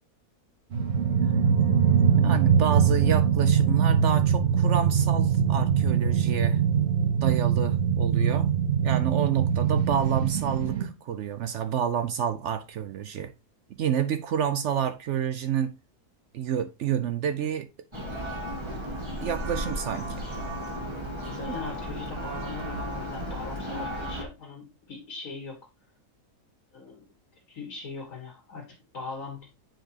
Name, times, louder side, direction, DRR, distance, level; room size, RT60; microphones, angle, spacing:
sound 1, 0.7-10.9, right 7 dB, 50° right, 1.0 m, -22 dB
voice 1, 2.2-6.6 7.2-8.5 8.8-13.3 13.8-15.8 16.3-17.7 19.2-20.1 21.5-21.6, right 9 dB, 70° right, 0.7 m, -29 dB
Church bell, 17.9-24.2, equal, 20° right, 1.6 m, -34 dB
voice 2, 21.2-25.6 26.7-27.1 27.5-29.5, left 4 dB, 60° left, 2.1 m, -40 dB
8.8 x 5.1 x 2.8 m
omnidirectional pair, 1.7 m